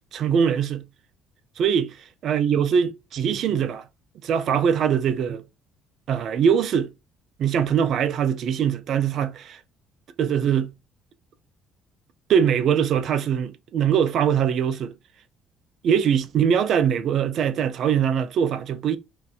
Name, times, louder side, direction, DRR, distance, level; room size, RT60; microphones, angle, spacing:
voice 1, 0.1-0.9 1.6-2.0 2.2-3.9 4.2-5.4 6.1-6.9 7.4-9.6 10.2-10.7 12.3-14.9 15.8-19.0, right 8 dB, 60° right, 0.4 m, -22 dB
2.5 x 2.2 x 2.3 m
supercardioid pair, 85°, 0 cm